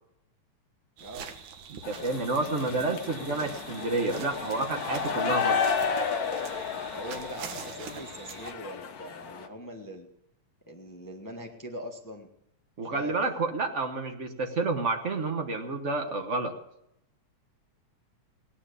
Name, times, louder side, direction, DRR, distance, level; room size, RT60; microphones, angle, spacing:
voice 1, 1.0-1.3 3.3-3.5 6.9-10.1 10.7-12.3 12.8-13.2, equal, 20° left, 2 dB, 0.5 m, -42 dB
sound 1, 1.0-8.5, right 7 dB, 80° right, 2.8 m, -44 dB
voice 2, 1.7-5.6 12.8-16.5, right 3 dB, 50° right, 4 dB, 0.8 m, -29 dB
sound 2, 1.8-9.5, left 6 dB, 80° left, 0.8 m, -32 dB
18.0 x 11.0 x 7.0 m, 0.78 s
omnidirectional pair, 3.4 m